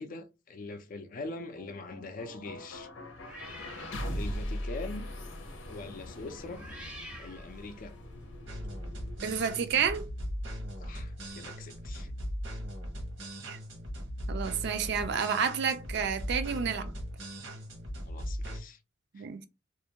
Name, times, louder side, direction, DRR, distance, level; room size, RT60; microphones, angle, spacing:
voice 1, 0.0-2.9 4.1-5.1 5.6-6.6 7.2-8.0 10.8-12.1 18.1-18.8 19.2-19.3, left 2 dB, 45° left, 0.4 m, -43 dB
sound 1, 1.0-13.0, left 1 dB, 85° left, 0.7 m, -42 dB
sound 2, 3.2-4.4 4.8-5.1 6.3-8.1, equal, 5° right, 0.5 m, -48 dB
sound 3, 8.5-18.6, equal, 85° right, 0.9 m, -39 dB
voice 2, 9.2-10.1 13.4-13.6 14.3-16.9 19.1-19.5, right 7 dB, 65° right, 0.4 m, -30 dB
2.4 x 2.2 x 2.8 m
head